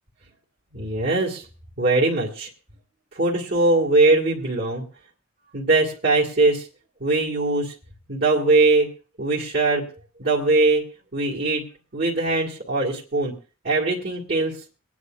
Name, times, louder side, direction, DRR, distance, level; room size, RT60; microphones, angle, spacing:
voice 1, 0.7-1.5 1.8-2.5 3.1-4.8 5.5-6.7 7.0-7.7 8.1-8.9 9.2-9.9 10.2-10.8 11.1-11.6 11.9-13.3 13.6-14.6, right 2 dB, 50° right, -4 dB, 1.9 m, -21 dB
24.0 x 9.6 x 2.4 m, 0.36 s
head